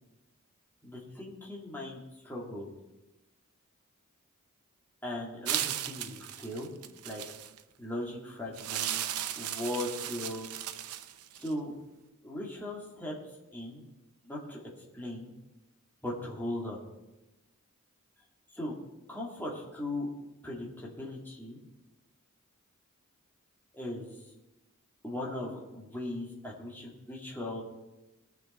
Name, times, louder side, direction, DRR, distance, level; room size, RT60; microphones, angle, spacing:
voice 1, 0.8-2.7 5.0-6.8 7.0-7.2 7.8-9.0 9.3-10.5 11.4-11.8 12.2-13.2 13.5-13.8 14.2-15.3 16.0-16.8 18.5-18.8 19.1-20.1 20.4-21.6 23.7-24.2 25.0-27.6, left 1 dB, 10° left, -4 dB, 2.2 m, -38 dB
sound 1, 5.5-7.6 8.6-11.5, right 11 dB, 90° right, 0.6 m, -36 dB
20.0 x 6.8 x 4.3 m, 1.0 s
head